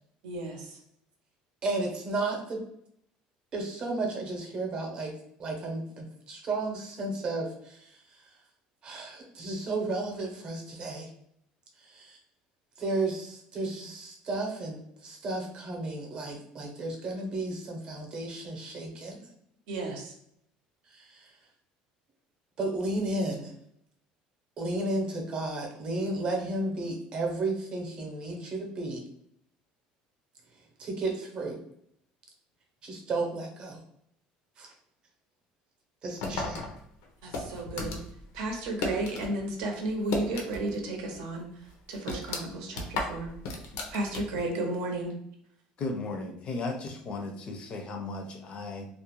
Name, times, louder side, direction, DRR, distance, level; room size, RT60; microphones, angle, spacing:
voice 1, 0.2-0.8 19.7-20.1 37.2-38.0 38.3-43.3 43.9-45.1, right 2 dB, 85° right, 2 dB, 0.7 m, -33 dB
voice 2, 1.6-2.6 3.5-5.1 5.4-7.8 8.8-11.1 11.9-12.2 12.8-19.2 20.9-21.2 22.6-23.5 24.6-29.0 30.8-31.6 32.8-33.8 34.6-34.7 36.0-36.7, right 2 dB, 35° right, 1 dB, 0.7 m, -33 dB
sound 1, 36.2-39.3 39.6-40.8 41.1-41.2 41.7-44.5, left 3 dB, 90° left, 0.6 m, -35 dB
voice 3, 45.8-48.9, left 3 dB, 40° left, 4 dB, 0.4 m, -35 dB
2.4 x 2.1 x 2.9 m, 0.71 s
cardioid pair, 135°, 3 cm